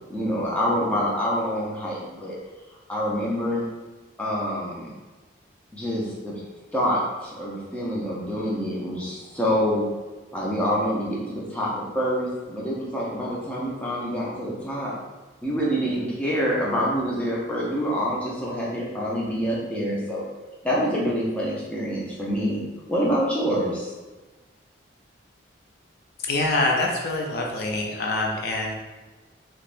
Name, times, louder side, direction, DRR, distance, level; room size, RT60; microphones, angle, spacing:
voice 1, 0.1-2.4 2.9-3.6 4.2-4.9 5.7-6.3 6.7-9.8 10.3-14.9 15.4-20.2 20.6-22.6 22.9-23.9, equal, 5° left, -5 dB, 0.6 m, -26 dB
voice 2, 26.2-28.7, left 2 dB, 55° left, 0 dB, 0.4 m, -25 dB
3.4 x 3.0 x 2.5 m, 1.2 s
head